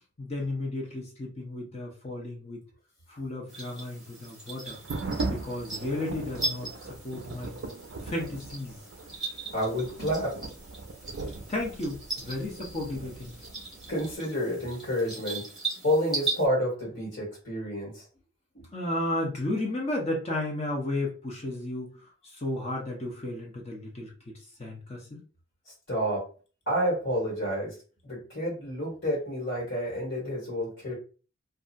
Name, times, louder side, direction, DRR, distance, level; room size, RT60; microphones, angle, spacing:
voice 1, 0.2-2.6 3.1-4.8 5.2-7.6 8.0-8.8 11.5-13.4 18.7-21.9 22.2-24.3 24.6-25.2, left 1 dB, 35° left, -1 dB, 0.7 m, -33 dB
sound 1, 3.5-16.5, right 3 dB, ahead, 0.9 m, -39 dB
sound 2, 4.7-14.1, right 3 dB, 75° right, 0.4 m, -39 dB
voice 2, 9.3-10.4 13.9-15.5 15.8-18.0 18.5-18.7 25.6-26.3 26.7-27.8 28.0-30.9, equal, 65° left, -6 dB, 1.5 m, -29 dB
2.7 x 2.3 x 2.5 m, 0.37 s
head